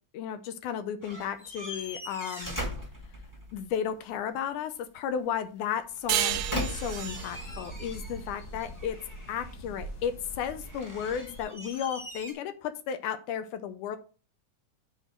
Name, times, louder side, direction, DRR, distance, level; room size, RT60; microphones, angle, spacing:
voice 1, 0.1-2.6 3.5-9.0 9.3-14.0, left 8 dB, 80° left, 10 dB, 2.1 m, -34 dB
sound 1, 1.0-3.7 5.9-8.4 8.7-9.6 10.6-12.3, equal, 10° left, 0.8 m, -40 dB
sound 2, 6.1-9.3, right 12 dB, 80° right, 1.9 m, -32 dB
sound 3, 6.3-11.4, equal, 50° left, 1.7 m, -43 dB
8.1 x 3.7 x 5.9 m, 0.36 s
omnidirectional pair, 3.6 m